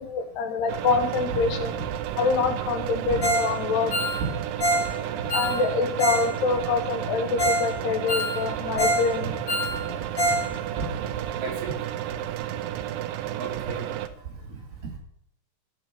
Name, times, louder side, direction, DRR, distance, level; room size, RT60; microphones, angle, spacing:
voice 1, 0.1-1.7 2.2-3.9 5.3-9.3, left 4 dB, 80° left, 6 dB, 3.5 m, -25 dB
sound 1, 0.7-14.1, right 12 dB, 90° right, 2.0 m, -32 dB
Ringtone, 3.2-3.5 3.8-6.3 6.5-6.6 7.1-7.2 7.4-7.7 7.9-9.1 9.3-10.5 10.7-10.8 11.3-11.4, right 1 dB, 35° left, 2.1 m, -25 dB
voice 2, 11.4-11.7 13.4-13.8, right 4 dB, 75° right, 0 dB, 4.6 m, -32 dB
15.0 x 5.3 x 7.1 m, 0.72 s
omnidirectional pair, 4.7 m